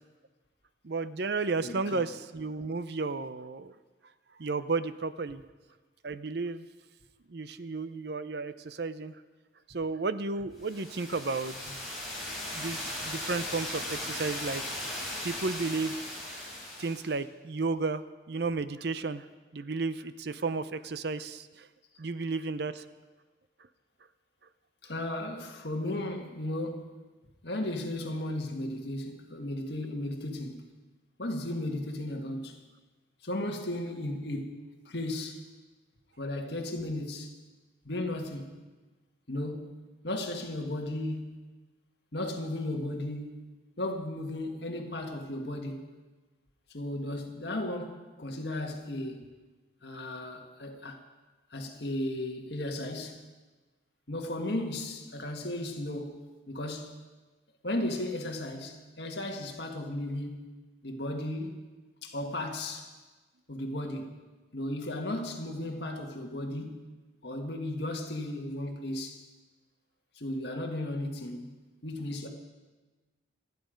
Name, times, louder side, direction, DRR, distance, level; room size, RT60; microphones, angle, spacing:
voice 1, 0.8-3.7 4.4-5.4 6.0-6.7 7.3-9.2 9.7-11.7 12.5-14.6 15.2-16.0 16.8-19.3 19.5-21.7 22.0-22.8, right 3 dB, 55° right, 0.6 m, -33 dB
voice 2, 1.6-2.1 24.8-26.9 27.4-30.6 31.2-32.6 33.2-35.4 36.2-37.4 37.8-38.6 39.3-41.4 42.1-46.0 46.7-49.3 49.8-51.0 51.5-53.2 54.1-57.0 57.6-61.6 62.0-62.9 63.5-64.2 64.5-66.9 67.2-69.2 70.2-72.3, left 1 dB, 55° left, 1.8 m, -35 dB
sound 1, 10.6-17.1, left 1 dB, ahead, 5.5 m, -38 dB
27.0 x 9.5 x 5.2 m
head